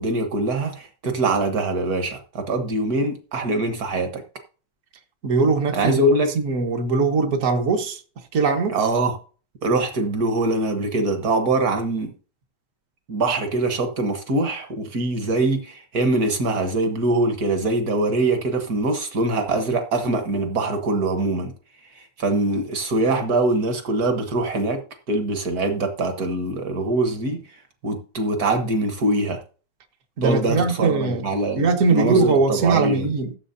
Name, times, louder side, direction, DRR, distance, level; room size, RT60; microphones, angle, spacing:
voice 1, 0.0-4.2 5.7-6.3 8.7-9.2 9.6-12.1 13.1-21.5 21.9-24.8 25.1-27.4 27.8-29.4 30.2-33.1, right 2 dB, 65° right, 0.9 m, -23 dB
voice 2, 5.2-8.0 8.3-8.8 30.2-31.3 31.6-33.3, right 4 dB, 85° right, 0.7 m, -21 dB
16.0 x 7.3 x 2.7 m
omnidirectional pair, 3.4 m